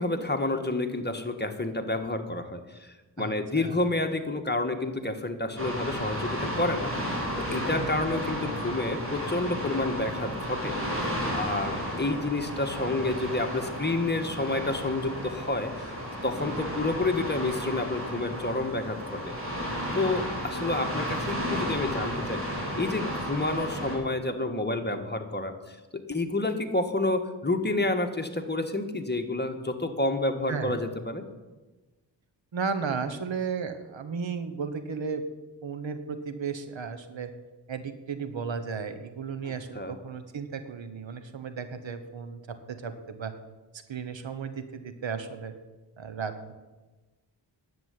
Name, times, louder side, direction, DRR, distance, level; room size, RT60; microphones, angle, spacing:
voice 1, 0.0-6.9 7.4-10.7 11.3-15.9 16.2-19.3 19.9-31.2 39.4-40.0, left 2 dB, 20° left, 5 dB, 1.6 m, -29 dB
voice 2, 3.2-3.8 7.7-8.0 8.4-8.6 30.5-30.8 32.5-35.3 35.6-37.3 37.7-43.3 43.7-45.5 46.0-46.5, right 5 dB, 80° right, 10 dB, 1.3 m, -34 dB
sound 1, 5.6-24.0, equal, 30° right, 4.7 m, -33 dB
10.5 x 7.7 x 9.8 m, 1.2 s
wide cardioid pair, 65°, 45 cm